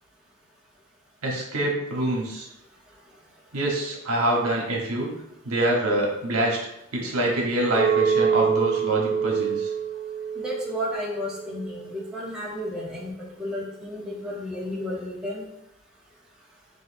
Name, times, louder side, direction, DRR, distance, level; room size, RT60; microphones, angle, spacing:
voice 1, 1.2-2.5 3.5-5.1 5.4-6.6 6.9-9.7, right 1 dB, 75° right, -2 dB, 1.1 m, -25 dB
Chink clink, 7.7-12.0, right 7 dB, 35° right, 1.6 m, -26 dB
voice 2, 10.4-15.5, left 1 dB, 5° right, -5 dB, 0.8 m, -32 dB
6.3 x 2.7 x 2.6 m, 0.80 s
head